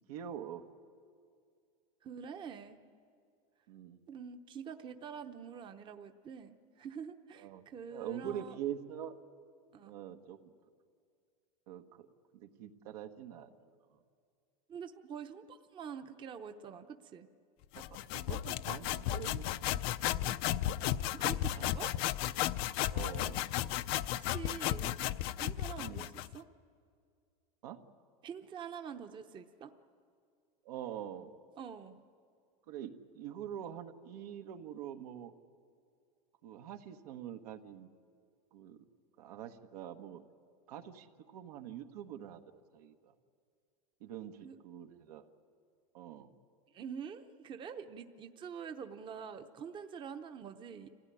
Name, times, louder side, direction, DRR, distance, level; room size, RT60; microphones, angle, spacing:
voice 1, 0.1-0.6 3.7-4.0 7.4-7.6 7.9-9.2 9.8-10.5 11.7-12.1 12.3-13.5 17.7-20.4 21.5-21.8 22.9-23.5 25.8-26.1 27.6-27.8 30.6-31.4 32.7-35.3 36.4-37.9 38.5-38.8 39.2-40.2 40.7-42.4 42.7-43.1 44.0-45.3 45.9-46.3, right 10 dB, 80° right, 6 dB, 1.5 m, -45 dB
voice 2, 2.0-2.8 4.1-8.6 9.7-9.9 14.7-17.3 21.1-22.0 24.2-25.0 25.4-26.4 28.2-29.7 31.6-32.0 44.4-44.6 46.7-50.9, right 7 dB, 25° right, 7 dB, 0.8 m, -46 dB
sound 1, 17.7-26.4, left 13 dB, 55° left, 0.6 m, -34 dB
25.5 x 16.5 x 9.9 m, 2.3 s
supercardioid pair, 145°, 19 cm